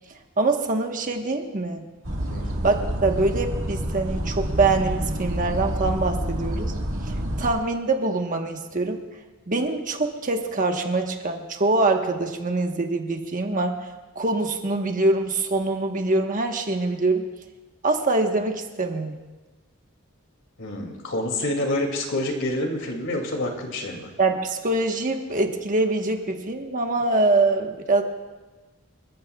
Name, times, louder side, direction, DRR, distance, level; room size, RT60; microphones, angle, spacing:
voice 1, 0.4-1.9 2.6-6.7 7.1-9.0 9.5-13.9 14.1-17.2 17.8-19.2 24.2-28.0, right 2 dB, 40° right, 4 dB, 1.2 m, -24 dB
sound 1, 2.0-7.5, equal, 80° right, 1.7 m, -28 dB
voice 2, 20.6-24.1, left 1 dB, 65° left, 2 dB, 2.5 m, -27 dB
28.0 x 14.5 x 2.3 m, 1.2 s
head